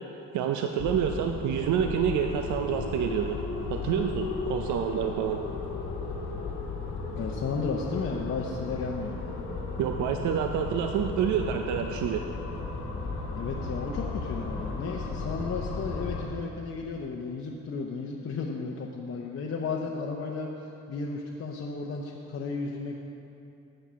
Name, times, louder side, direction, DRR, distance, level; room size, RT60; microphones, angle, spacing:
voice 1, 0.3-3.4 3.7-5.4 9.8-12.2, right 8 dB, 75° right, 5 dB, 0.5 m, -28 dB
sound 1, 0.8-16.3, left 3 dB, 80° left, 1.3 m, -35 dB
voice 2, 7.1-9.2 13.3-23.0, left 4 dB, 45° left, -1 dB, 0.7 m, -34 dB
7.6 x 7.2 x 5.6 m, 2.7 s
cardioid pair, 90°, 30 cm